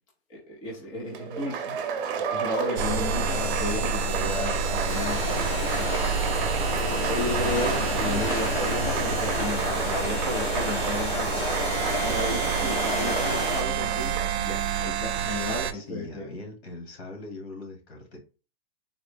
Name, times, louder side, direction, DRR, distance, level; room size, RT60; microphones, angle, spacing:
voice 1, 0.3-1.7 2.3-6.2 7.1-11.4 12.0-16.3, left 2 dB, 15° left, 0.5 m, -34 dB
Applause, 1.1-14.4, right 7 dB, 55° right, 0.8 m, -32 dB
sound 1, 2.8-15.7, right 5 dB, 90° right, 0.5 m, -29 dB
sound 2, 4.9-13.6, left 2 dB, 50° left, 1.3 m, -30 dB
voice 2, 15.7-18.2, left 2 dB, 75° left, 1.8 m, -41 dB
3.9 x 2.0 x 3.3 m
supercardioid pair, 170°, 32 cm